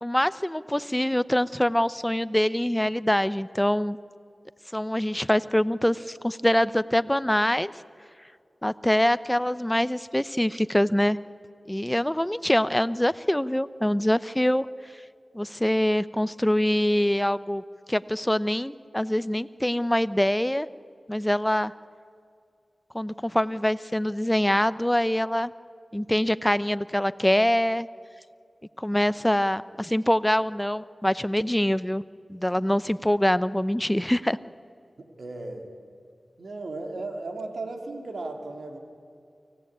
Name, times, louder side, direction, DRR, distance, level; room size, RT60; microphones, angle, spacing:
voice 1, 0.0-4.0 4.7-7.7 8.6-11.2 11.7-14.7 15.3-17.6 17.9-20.7 21.1-21.7 22.9-25.5 25.9-27.9 28.8-32.0 32.3-34.4, left 1 dB, 10° left, 16 dB, 0.7 m, -24 dB
voice 2, 35.0-35.7 36.4-38.8, right 2 dB, 80° right, 4 dB, 2.7 m, -36 dB
24.5 x 17.0 x 8.7 m, 2.3 s
cardioid pair, 45°, 0 cm